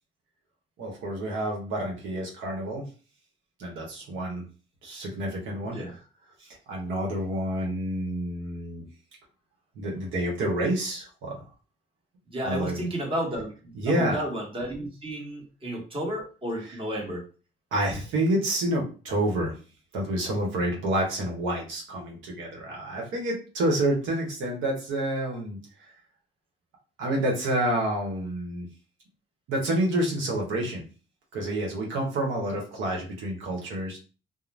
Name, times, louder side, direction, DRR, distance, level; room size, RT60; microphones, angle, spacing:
voice 1, 0.8-2.9 3.6-4.5 4.8-5.8 6.4-8.8 9.8-11.4 12.4-12.9 13.7-14.2 17.7-19.5 19.9-25.9 27.0-28.7 29.5-30.8 31.3-34.0, right 1 dB, 90° right, -1 dB, 1.0 m, -28 dB
voice 2, 12.3-17.3, equal, 25° right, 0 dB, 1.1 m, -32 dB
2.4 x 2.1 x 3.2 m, 0.35 s
cardioid pair, 90°, 20 cm